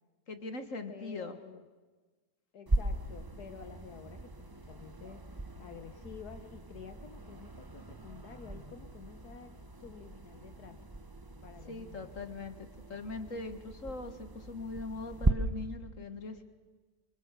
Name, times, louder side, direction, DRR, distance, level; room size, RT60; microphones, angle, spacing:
voice 1, 0.3-1.4 11.7-16.4, left 3 dB, 45° left, 8 dB, 2.0 m, -41 dB
voice 2, 0.9-1.7 2.5-5.2 5.6-10.8 11.4-12.1, left 7 dB, 65° left, 8 dB, 1.5 m, -50 dB
sound 1, 2.7-15.3, right 2 dB, 20° right, 0.6 m, -38 dB
27.5 x 25.0 x 6.8 m, 1.3 s
omnidirectional pair, 1.9 m